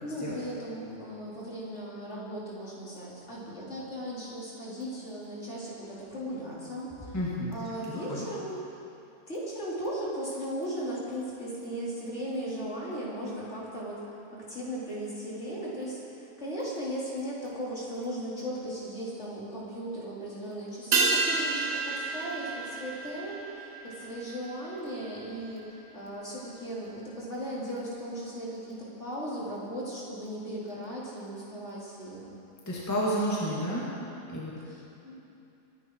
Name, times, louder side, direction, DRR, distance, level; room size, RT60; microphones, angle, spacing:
voice 1, 0.0-7.2 7.5-8.6 9.3-32.3 34.6-35.2, equal, 45° left, -6 dB, 3.7 m, -37 dB
voice 2, 7.1-7.5 7.9-8.2 32.7-33.8 34.3-34.5, equal, 10° left, -6 dB, 2.2 m, -30 dB
sound 1, 20.9-25.6 25.9-26.0, right 3 dB, 80° right, 1.9 m, -31 dB
24.0 x 11.0 x 4.7 m, 2.8 s
omnidirectional pair, 1.7 m